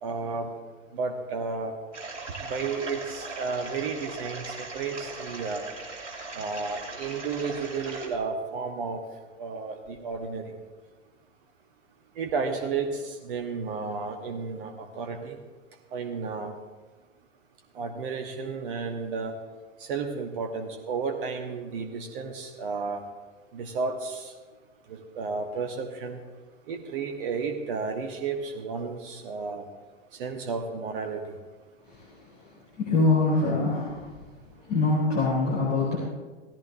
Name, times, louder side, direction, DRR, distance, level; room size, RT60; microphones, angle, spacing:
voice 1, 0.0-0.5 0.9-1.7 2.5-5.6 6.3-9.0 9.4-10.5 12.2-15.4 15.9-16.5 17.7-19.3 19.8-23.0 23.5-24.3 24.9-26.2 26.7-29.7 30.2-31.2, right 4 dB, 45° right, 4 dB, 1.3 m, -32 dB
sound 1, 1.9-8.1, right 3 dB, 70° right, 3.0 m, -39 dB
voice 2, 31.9-32.5 32.8-34.1 34.7-36.0, left 3 dB, 25° left, -6 dB, 3.5 m, -24 dB
16.5 x 14.5 x 2.7 m, 1.3 s
figure-of-eight pair, 105°, 38 cm